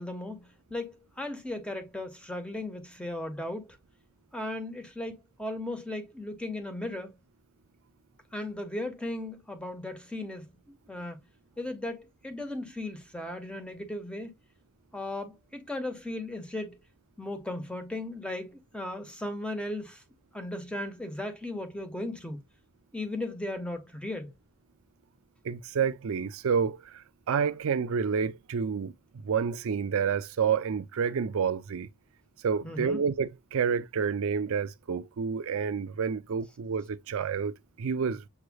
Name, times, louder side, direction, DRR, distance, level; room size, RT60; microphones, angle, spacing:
voice 1, 0.0-3.8 4.3-7.2 8.3-11.2 11.6-14.3 14.9-16.8 17.2-20.0 20.3-22.4 22.9-24.3 32.6-33.0, left 1 dB, 5° left, 1.1 m, -36 dB
voice 2, 25.4-28.9 29.2-31.9 32.4-38.2, right 6 dB, 65° right, 0.4 m, -29 dB
7.1 x 3.2 x 2.2 m
head